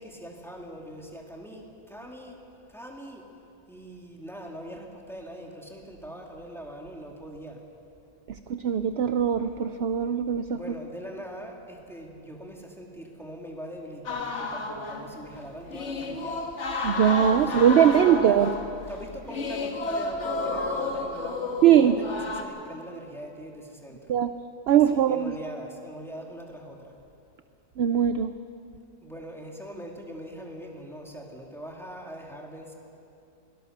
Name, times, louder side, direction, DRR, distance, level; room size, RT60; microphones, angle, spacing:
voice 1, 0.0-2.4 2.7-3.2 3.7-7.6 10.5-16.4 17.3-18.4 18.9-24.0 24.7-26.9 29.0-32.8, equal, ahead, 0 dB, 2.4 m, -41 dB
voice 2, 8.3-10.6 16.8-18.5 21.6-21.9 24.1-24.3 24.7-25.3 27.8-28.3, right 9 dB, 60° right, 10 dB, 0.7 m, -21 dB
sound 1, 14.0-22.4, left 3 dB, 55° left, 1.8 m, -32 dB
23.0 x 18.0 x 6.7 m, 2.7 s
omnidirectional pair, 1.4 m